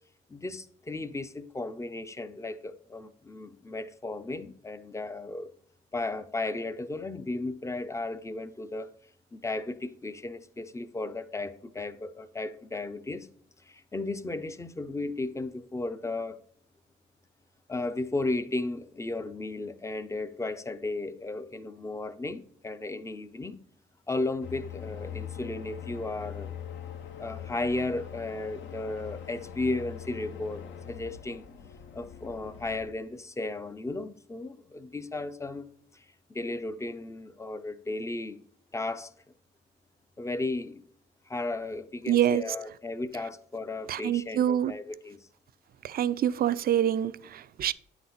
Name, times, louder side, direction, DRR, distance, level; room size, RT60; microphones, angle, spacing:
voice 1, 0.3-5.5 5.9-8.9 9.3-13.3 13.6-16.4 17.7-23.6 24.1-26.5 27.2-31.4 31.9-35.7 35.9-38.4 38.7-39.1 40.2-40.8 41.3-45.3, left 2 dB, 15° left, 0.5 m, -35 dB
sound 1, 24.4-32.9, left 9 dB, 70° left, 0.7 m, -42 dB
voice 2, 42.1-42.4 43.9-44.7 45.8-47.7, right 10 dB, 50° right, 0.4 m, -26 dB
9.2 x 4.0 x 4.2 m
cardioid pair, 90°, 20 cm